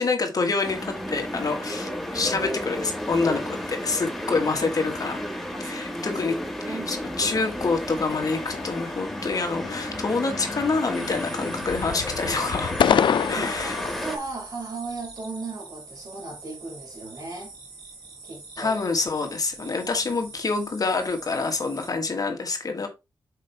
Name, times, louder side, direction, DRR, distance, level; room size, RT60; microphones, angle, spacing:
voice 1, 0.0-5.2 5.6-6.4 6.7-13.8 18.6-22.9, left 4 dB, 50° left, 1.6 m, -27 dB
sound 1, 0.6-14.2, equal, ahead, 1.6 m, -33 dB
voice 2, 4.3-6.1 6.6-7.4 13.4-17.5 18.2-18.8 19.6-19.8, right 3 dB, 50° right, 4.3 m, -38 dB
sound 2, 8.1-9.2 9.6-10.1 10.3-11.3 11.6-14.1, left 8 dB, 80° left, 0.3 m, -27 dB
sound 3, 10.9-21.9, right 3 dB, 90° right, 3.1 m, -44 dB
6.5 x 5.0 x 3.4 m
wide cardioid pair, 95°, 8 cm